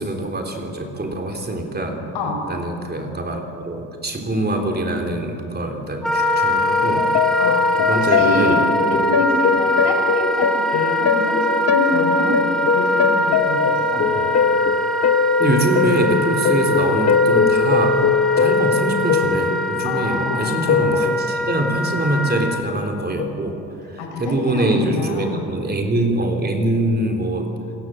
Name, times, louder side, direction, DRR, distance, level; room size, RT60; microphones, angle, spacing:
voice 1, 0.0-2.0 2.5-7.1 7.8-8.6 13.9-14.1 15.4-18.0 18.4-23.6 23.9-27.5, right 1 dB, 25° right, 3 dB, 3.4 m, -23 dB
Wind instrument woodwind instrument, 6.0-22.6, equal, ahead, 2.1 m, -22 dB
sound 1, 7.0-21.8 22.3-22.9 23.2-23.4 24.4-24.6, left 6 dB, 40° left, 1.1 m, -21 dB
voice 2, 7.4-8.6 8.9-14.0 19.8-20.6 24.0-25.4, left 1 dB, 85° left, 2 dB, 6.2 m, -27 dB
28.5 x 20.0 x 7.7 m, 2.8 s
cardioid pair, 140°, 41 cm